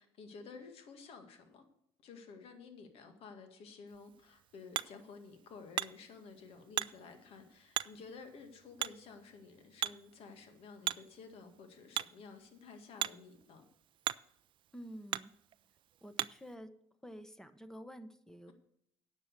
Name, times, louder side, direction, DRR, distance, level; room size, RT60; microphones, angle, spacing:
voice 1, 0.0-1.6 2.0-13.6, left 4 dB, 65° left, 6 dB, 2.0 m, -52 dB
Hammer, 3.9-16.5, right 11 dB, 50° right, 0.4 m, -42 dB
voice 2, 14.7-15.3 16.0-16.7 17.0-18.5, equal, 5° left, 11 dB, 1.0 m, -49 dB
9.9 x 7.5 x 6.7 m, 0.73 s
cardioid pair, 100°, 11 cm